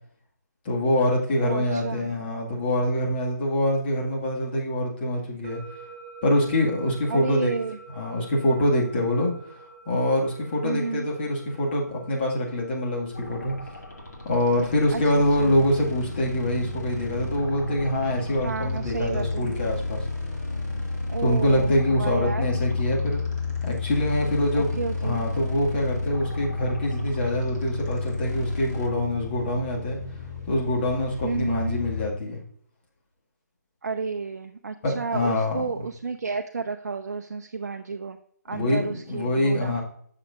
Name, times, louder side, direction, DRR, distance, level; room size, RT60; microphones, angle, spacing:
voice 1, 0.7-5.6 6.2-7.5 7.9-9.3 9.9-13.5 14.2-20.0 21.2-23.2 23.6-30.0 30.5-32.4 34.8-35.6 38.5-39.8, left 1 dB, 35° left, -2 dB, 1.9 m, -25 dB
voice 2, 1.4-2.1 7.1-7.8 10.6-11.1 14.9-15.6 18.4-19.5 21.1-22.5 24.5-25.3 31.2-31.8 33.8-38.2 38.5-39.8, right 4 dB, 60° right, 6 dB, 0.5 m, -31 dB
sound 1, 5.4-18.4, right 4 dB, 30° right, 2.2 m, -49 dB
sound 2, 13.1-28.9, left 1 dB, 85° left, 2.1 m, -39 dB
sound 3, 15.4-32.1, left 3 dB, 10° left, 2.5 m, -31 dB
7.7 x 6.6 x 2.5 m, 0.63 s
figure-of-eight pair, 145°, 10 cm